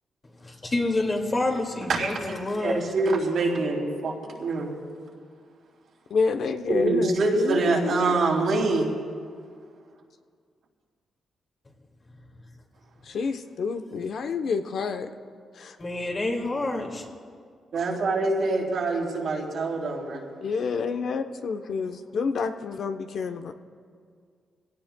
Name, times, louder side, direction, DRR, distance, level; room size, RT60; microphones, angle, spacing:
voice 1, 0.4-2.9 15.8-17.1, left 2 dB, 30° left, 1 dB, 2.1 m, -28 dB
voice 2, 1.9-2.3 2.6-4.8 6.7-9.0 17.7-20.2 21.0-21.1, right 3 dB, 70° right, -2 dB, 3.1 m, -25 dB
voice 3, 6.1-8.2 13.1-15.1 15.6-15.8 20.4-23.5, left 5 dB, 65° left, 7 dB, 0.8 m, -28 dB
24.0 x 17.5 x 2.2 m, 2.1 s
cardioid pair, 95°, 0 cm